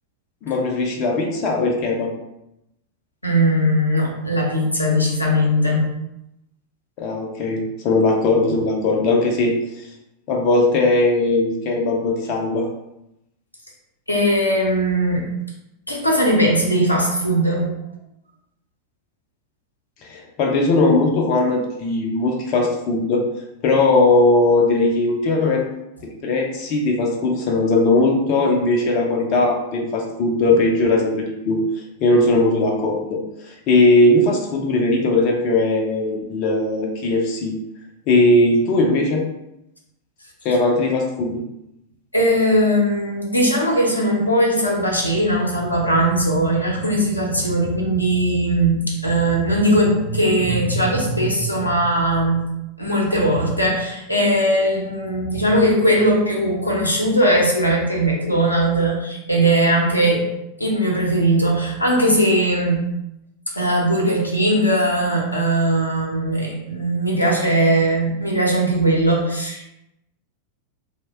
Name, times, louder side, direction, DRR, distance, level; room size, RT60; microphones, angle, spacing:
voice 1, 0.4-2.1 7.0-9.9 10.3-12.7 20.0-23.2 23.6-25.7 26.0-31.6 32.0-37.5 38.1-39.3 40.4-41.4, left 2 dB, 40° left, 0 dB, 0.4 m, -19 dB
voice 2, 3.2-5.9 14.1-15.3 15.9-17.7 42.1-52.4 52.8-60.3 60.6-62.8 63.6-69.7, right 1 dB, 85° left, -2 dB, 0.6 m, -19 dB
2.6 x 2.1 x 3.3 m, 0.86 s
figure-of-eight pair, 90°, 0 cm